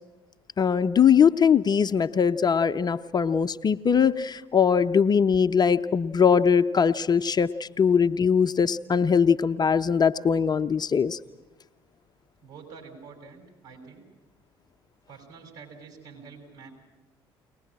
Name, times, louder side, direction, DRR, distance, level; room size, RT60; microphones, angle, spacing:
voice 1, 0.6-11.2, left 6 dB, 30° left, 9 dB, 0.7 m, -21 dB
voice 2, 12.4-14.0 15.1-16.7, right 5 dB, 65° right, 0 dB, 6.6 m, -47 dB
22.5 x 19.5 x 8.9 m, 1.1 s
figure-of-eight pair, 50°, 13 cm